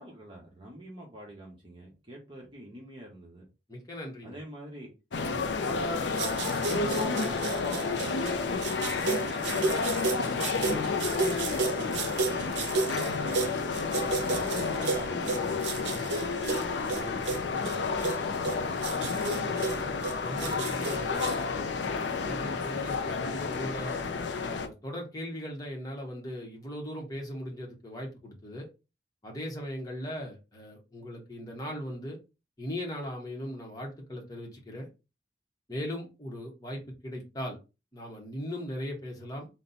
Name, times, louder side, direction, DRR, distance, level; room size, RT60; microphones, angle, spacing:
voice 1, 0.0-3.4 4.2-4.9 5.2-8.3 9.0-13.5 14.2-16.5 16.9-19.5, right 1 dB, 25° right, 1.1 m, -47 dB
voice 2, 3.7-4.4 20.2-21.6 22.2-24.1 24.4-28.7 29.2-32.2 32.6-34.9 35.7-37.6 37.9-39.5, equal, 20° left, 1.0 m, -38 dB
sound 1, 5.1-24.7, left 4 dB, 75° left, 0.5 m, -31 dB
sound 2, 6.2-21.4, right 4 dB, 70° right, 0.6 m, -33 dB
4.0 x 2.2 x 4.0 m
head